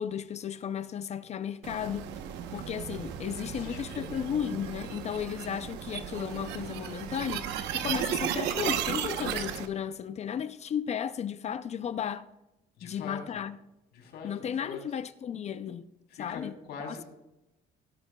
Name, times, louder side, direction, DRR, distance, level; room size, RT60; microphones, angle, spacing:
voice 1, 0.0-2.1 2.5-12.3 12.8-13.6 14.2-15.9 16.2-16.5 16.9-17.0, left 8 dB, 40° left, 0.5 m, -34 dB
sound 1, 1.6-9.7, right 9 dB, 90° right, 0.9 m, -35 dB
voice 2, 3.4-4.3 5.1-5.2 12.8-13.2 13.9-14.8 16.1-17.0, left 5 dB, 75° left, 3.2 m, -43 dB
16.5 x 11.0 x 2.3 m
cardioid pair, 110°, 17 cm